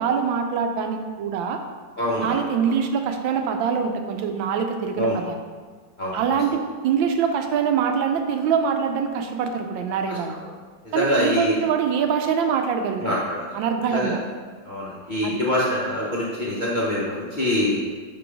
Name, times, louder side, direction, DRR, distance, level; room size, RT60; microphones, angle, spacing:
voice 1, 0.0-1.6 2.2-5.4 6.1-10.4 10.9-13.2 13.5-14.2 15.2-15.4, right 6 dB, 85° right, 5 dB, 1.4 m, -24 dB
voice 2, 2.0-2.4 5.0-5.2 6.0-6.2 10.9-11.5 13.0-13.5 13.9-14.1 14.7-17.8, left 1 dB, 40° left, -7 dB, 0.7 m, -24 dB
6.0 x 3.8 x 4.9 m, 1.5 s
omnidirectional pair, 2.1 m